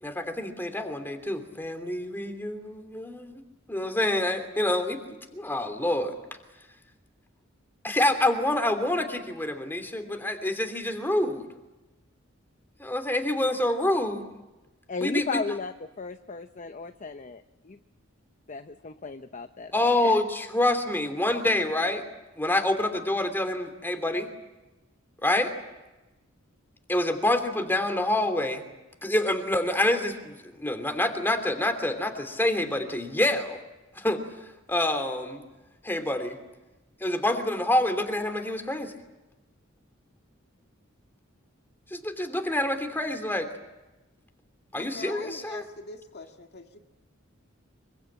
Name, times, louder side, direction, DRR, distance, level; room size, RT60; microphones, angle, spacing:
voice 1, 0.0-3.4 3.7-6.2 7.8-11.5 12.8-14.2 15.0-15.4 19.7-22.0 22.4-24.3 25.2-25.5 26.9-28.6 29.0-33.6 33.9-34.2 34.7-35.4 35.8-36.4 37.0-38.9 41.9-43.5 44.7-45.6, left 1 dB, 10° left, 6 dB, 3.0 m, -27 dB
voice 2, 14.9-17.8 18.5-19.7 20.0-20.2, left 4 dB, 40° left, 8 dB, 0.8 m, -35 dB
voice 3, 44.7-46.8, left 3 dB, 55° left, 4 dB, 2.0 m, -43 dB
25.5 x 23.0 x 8.7 m, 1.1 s
head